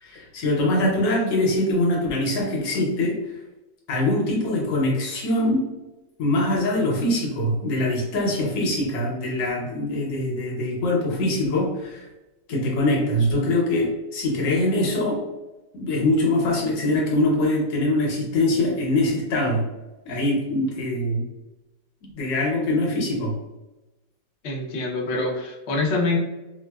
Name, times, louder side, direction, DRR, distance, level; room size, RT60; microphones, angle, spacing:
voice 1, 0.0-3.2 3.9-5.7 6.2-12.1 12.5-15.2 15.7-19.7 20.0-21.3 22.0-23.4, left 1 dB, 80° left, -2 dB, 1.5 m, -23 dB
voice 2, 24.4-26.2, left 3 dB, 60° left, -2 dB, 0.8 m, -25 dB
4.4 x 2.1 x 2.2 m, 1.0 s
omnidirectional pair, 1.9 m